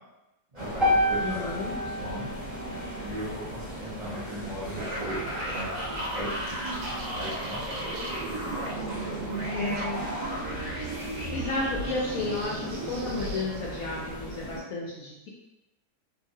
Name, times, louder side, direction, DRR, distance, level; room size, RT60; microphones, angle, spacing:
voice 1, 0.5-1.5 2.0-2.3 3.0-6.3 7.1-7.6 7.8-8.5 8.9-9.3, right 1 dB, 60° right, -10 dB, 0.4 m, -38 dB
sound 1, 0.6-14.6, right 1 dB, 25° right, 0.8 m, -39 dB
sound 2, 0.8-5.0, left 1 dB, ahead, 0.5 m, -30 dB
voice 2, 1.2-1.8 9.5-10.0 11.3-15.3, left 2 dB, 70° left, -4 dB, 0.9 m, -32 dB
sound 3, 4.8-13.4, right 1 dB, 85° right, 1.2 m, -34 dB
2.8 x 2.6 x 2.6 m, 0.95 s
omnidirectional pair, 1.8 m